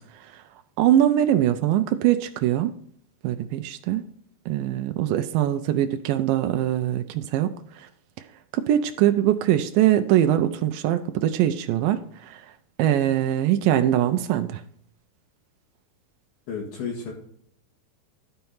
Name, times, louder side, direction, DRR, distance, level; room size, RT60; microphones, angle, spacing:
voice 1, 0.8-2.7 3.2-4.0 4.5-7.9 8.5-12.5 12.8-14.6, right 12 dB, 90° right, 8 dB, 2.0 m, -22 dB
voice 2, 16.5-17.1, left 5 dB, 70° left, -3 dB, 3.6 m, -32 dB
12.5 x 4.5 x 5.5 m, 0.65 s
omnidirectional pair, 4.7 m